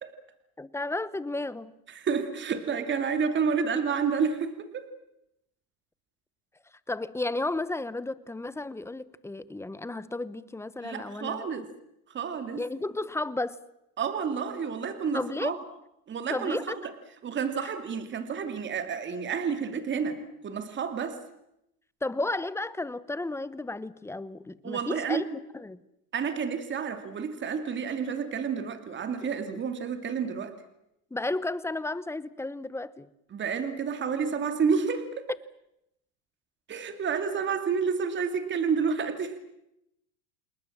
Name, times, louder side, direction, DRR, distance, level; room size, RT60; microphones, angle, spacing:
voice 1, 0.6-1.7 6.9-11.5 12.5-13.6 15.1-15.6 16.3-16.8 17.6-17.7 22.0-25.8 29.2-29.3 31.1-33.1, left 2 dB, 5° left, 0.9 m, -33 dB
voice 2, 1.9-4.9 10.8-11.7 12.1-12.6 14.0-15.6 16.1-16.8 17.2-21.2 24.6-25.2 26.1-30.5 33.3-35.3 36.7-39.4, right 6 dB, 25° right, 2.6 m, -30 dB
28.5 x 20.0 x 7.5 m
supercardioid pair, 120°, 43 cm